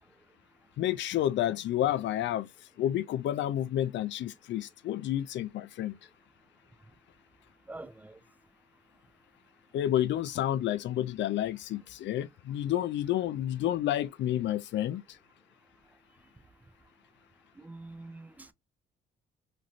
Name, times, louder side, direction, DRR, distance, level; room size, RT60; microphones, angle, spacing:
voice 1, 0.8-2.5 2.8-6.0 9.7-15.0, left 12 dB, 65° left, 0.4 m, -30 dB
voice 2, 7.7-8.2 17.6-18.5, right 2 dB, 10° right, 0.4 m, -45 dB
3.0 x 2.5 x 2.5 m
cardioid pair, 90°, 20 cm